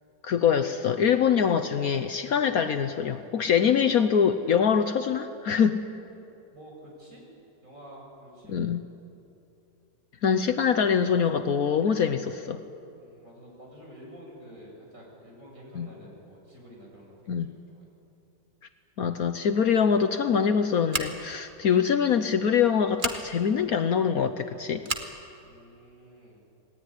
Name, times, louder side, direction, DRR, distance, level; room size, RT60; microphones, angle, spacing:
voice 1, 0.2-5.8 8.5-8.8 10.2-12.6 15.7-15.9 17.3-17.5 19.0-24.8, left 7 dB, 60° left, 9 dB, 1.2 m, -24 dB
voice 2, 6.5-7.2 7.6-8.6 12.9-17.8 25.4-26.5, equal, 45° right, -2 dB, 7.7 m, -49 dB
Scissors, 20.9-21.4 22.9-23.2 24.8-25.1, right 3 dB, 30° right, 1.7 m, -31 dB
26.5 x 19.0 x 9.8 m, 2.7 s
omnidirectional pair, 1.9 m